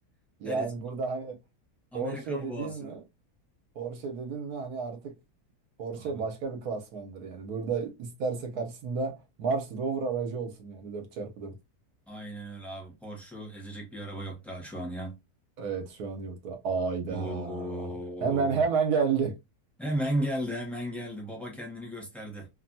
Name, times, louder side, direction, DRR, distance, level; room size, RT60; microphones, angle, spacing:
voice 1, 0.4-1.4 1.9-3.0 3.7-5.1 5.8-11.5 15.6-17.9 18.2-19.3, right 5 dB, 80° right, 1.3 m, -31 dB
voice 2, 1.9-2.9 5.9-6.2 12.1-15.1 17.1-18.5 19.8-22.5, equal, ahead, 0.8 m, -35 dB
3.2 x 2.2 x 2.6 m
omnidirectional pair, 1.7 m